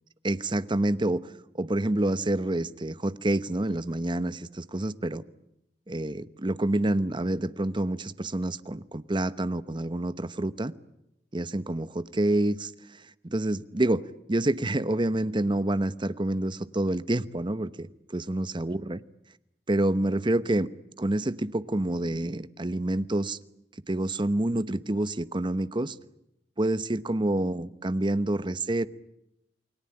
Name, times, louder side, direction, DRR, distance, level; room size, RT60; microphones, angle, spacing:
voice 1, 0.2-5.2 5.9-10.7 11.3-14.0 14.3-19.0 19.7-20.7 21.0-23.4 23.9-26.0 26.6-28.9, right 1 dB, 30° right, 14 dB, 0.9 m, -28 dB
29.0 x 21.5 x 8.8 m, 0.86 s
head